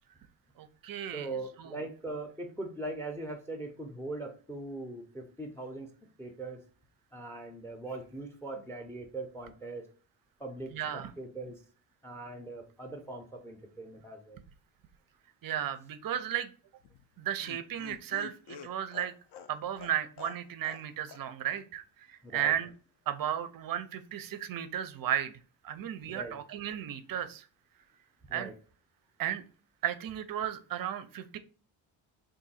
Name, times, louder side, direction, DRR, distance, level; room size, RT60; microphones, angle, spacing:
voice 1, 0.6-1.3 1.6-1.8 10.7-11.1 15.4-16.5 17.2-19.1 19.5-22.7 23.1-25.3 25.6-27.4 28.3-28.5 29.2-29.4 29.8-31.4, right 10 dB, 45° right, 11 dB, 0.5 m, -34 dB
voice 2, 1.1-5.9 6.2-6.6 7.1-9.9 10.4-11.6 12.0-14.4 22.2-22.5 26.1-26.4 28.3-28.5, right 2 dB, 5° left, 5 dB, 0.5 m, -41 dB
Laughter, 16.8-20.8 21.1-21.2 21.5-21.6, left 7 dB, 55° left, 0.6 m, -48 dB
3.7 x 2.6 x 4.1 m, 0.38 s
cardioid pair, 135°, 49 cm